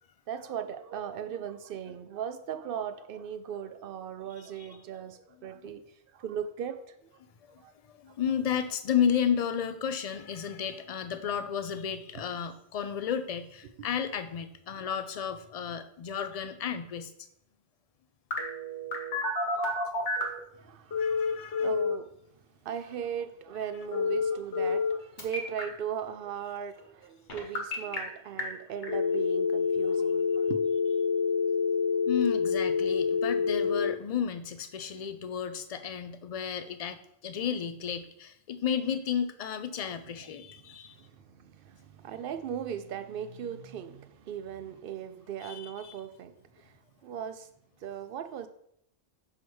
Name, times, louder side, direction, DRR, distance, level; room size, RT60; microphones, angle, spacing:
voice 1, 0.3-5.8 6.1-7.0 7.6-7.7 20.6-22.1 22.6-30.6 39.8-39.9 40.6-46.8 47.0-47.5 47.8-48.5, right 8 dB, 60° right, 10 dB, 0.6 m, -38 dB
voice 2, 7.5-17.1 21.0-21.7 32.1-41.0 45.4-46.0, left 8 dB, 65° left, 9 dB, 0.3 m, -32 dB
Telephone, 18.3-20.4 20.9-21.9 23.9-24.9 25.2-25.6 27.3-28.0 28.4-28.5 28.8-33.9, left 5 dB, 85° left, 1.6 m, -28 dB
6.4 x 5.6 x 3.1 m, 0.73 s
omnidirectional pair, 1.2 m